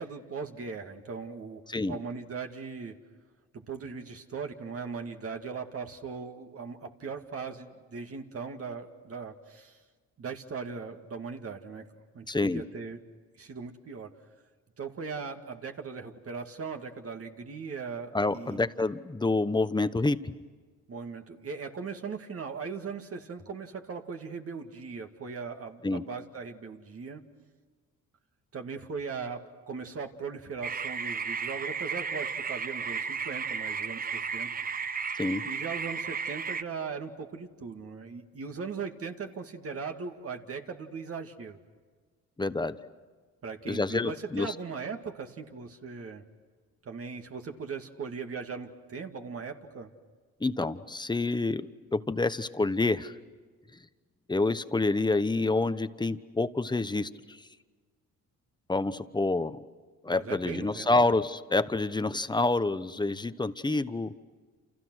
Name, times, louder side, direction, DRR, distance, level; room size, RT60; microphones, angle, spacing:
voice 1, 0.0-1.6 1.9-2.9 3.5-9.8 10.2-11.9 12.1-13.0 13.4-14.1 14.8-18.6 20.9-27.2 28.5-34.5 35.5-41.6 43.4-46.2 46.9-49.9 60.1-61.1, right 5 dB, 50° right, 4 dB, 2.2 m, -39 dB
voice 2, 12.3-12.6 18.1-20.3 25.8-26.0 35.2-35.4 42.4-42.8 43.7-44.5 50.4-53.1 54.3-57.4 58.7-59.6 60.0-64.1, left 2 dB, 15° left, 12 dB, 1.0 m, -28 dB
sound 1, 30.6-36.6, right 6 dB, 30° right, 0.8 m, -34 dB
29.5 x 28.0 x 6.3 m, 1.5 s
cardioid pair, 90°, 30 cm